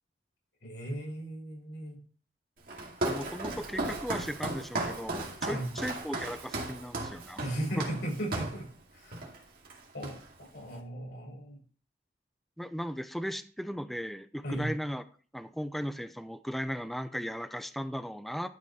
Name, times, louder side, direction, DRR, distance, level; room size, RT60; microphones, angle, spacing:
voice 1, 0.6-2.0 5.5-5.7 7.0-7.1 7.4-9.3 9.9-11.6 14.4-14.7, right 1 dB, 85° left, -2 dB, 5.4 m, -37 dB
Walk footsteps, 2.7-8.6 9.1-9.4 9.7-10.5, right 2 dB, 55° right, 2.4 m, -36 dB
voice 2, 3.0-7.4 7.8-7.9 12.6-15.0 15.3-18.5, equal, ahead, 10 dB, 0.6 m, -36 dB
12.0 x 5.0 x 4.2 m, 0.40 s
head